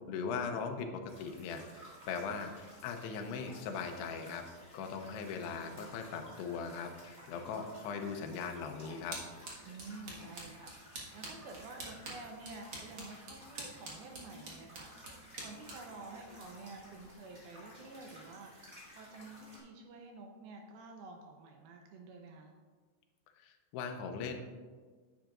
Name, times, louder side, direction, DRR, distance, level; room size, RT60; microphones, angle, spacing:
voice 1, 0.1-2.5 2.8-4.4 4.7-9.2 23.4-24.3, left 5 dB, 80° left, 4 dB, 2.7 m, -39 dB
sound 1, 1.1-19.6, equal, 15° right, 1.8 m, -55 dB
sound 2, 9.0-17.1, right 2 dB, 65° right, 1.2 m, -49 dB
voice 2, 9.6-18.5 19.0-22.5, right 3 dB, 80° right, 2 dB, 2.3 m, -50 dB
10.0 x 8.8 x 2.5 m, 1.5 s
omnidirectional pair, 4.9 m